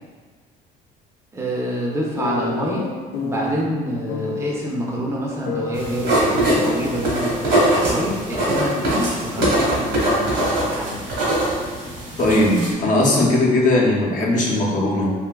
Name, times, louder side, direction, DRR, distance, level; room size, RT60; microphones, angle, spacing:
voice 1, 1.3-2.9 3.2-11.1, equal, 15° right, -3 dB, 0.5 m, -27 dB
sound 1, 2.2-3.6 4.1-4.6 5.5-7.1 7.5-9.1 9.4-9.5, left 4 dB, 85° left, 0.4 m, -30 dB
sound 2, 5.7-12.7, right 1 dB, 75° right, 1.1 m, -22 dB
voice 2, 12.2-15.1, left 1 dB, 50° left, -3 dB, 0.7 m, -18 dB
3.4 x 2.6 x 2.2 m, 1.5 s
cardioid pair, 110°, 17 cm